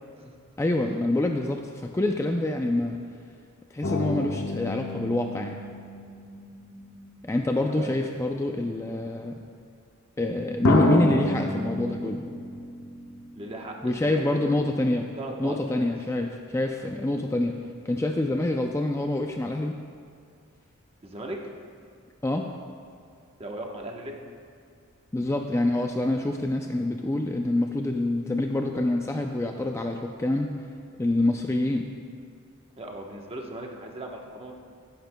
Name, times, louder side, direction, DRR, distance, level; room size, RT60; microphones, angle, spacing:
voice 1, 0.6-3.0 3.7-5.6 7.2-9.4 10.2-12.2 13.8-15.1 15.4-17.6 17.8-19.8 22.2-22.5 25.1-30.5 31.0-31.9, left 1 dB, 15° left, 3 dB, 0.4 m, -26 dB
sound 1, 3.8-7.8 8.6-8.7 10.6-14.0 14.3-14.4, left 2 dB, 90° left, 1.1 m, -29 dB
voice 2, 7.6-8.0 13.3-14.4 15.2-15.9 21.0-21.4 23.4-24.2 32.8-34.5, right 1 dB, 25° right, 0 dB, 1.0 m, -38 dB
16.5 x 10.5 x 2.2 m, 2.2 s
head